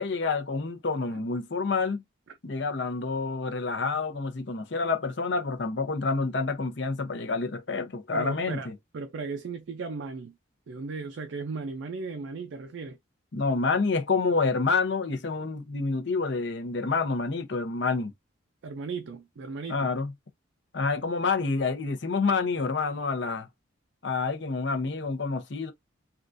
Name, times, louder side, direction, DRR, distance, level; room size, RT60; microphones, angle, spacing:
voice 1, 0.0-2.0 2.4-8.7 13.3-18.1 19.7-20.1 20.7-23.5 24.0-25.7, left 4 dB, 55° left, 0.7 m, -28 dB
voice 2, 8.1-8.7 8.9-10.4 10.7-13.0 18.6-20.0, right 4 dB, 65° right, 0.4 m, -36 dB
3.6 x 2.4 x 2.5 m
head